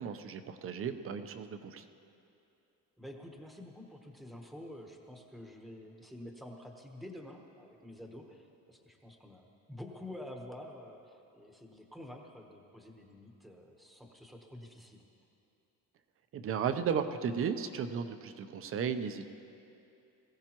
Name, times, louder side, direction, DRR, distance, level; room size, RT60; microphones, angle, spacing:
voice 1, 0.0-1.9 16.3-19.3, right 7 dB, 40° right, 9 dB, 0.6 m, -35 dB
voice 2, 3.0-15.0, left 1 dB, ahead, 1 dB, 1.0 m, -49 dB
21.5 x 15.5 x 3.0 m, 2.7 s
cardioid pair, 165°, 35 cm